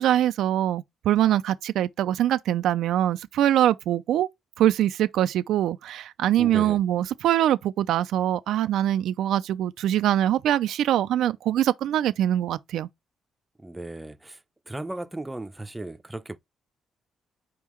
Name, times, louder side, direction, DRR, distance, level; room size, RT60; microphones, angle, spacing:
voice 1, 0.0-4.3 4.6-12.9, right 12 dB, 80° right, 0.4 m, -23 dB
voice 2, 6.4-6.8 13.6-14.4 14.7-16.4, right 2 dB, 10° right, 0.6 m, -36 dB
4.6 x 3.5 x 3.0 m
cardioid pair, 90°, 0 cm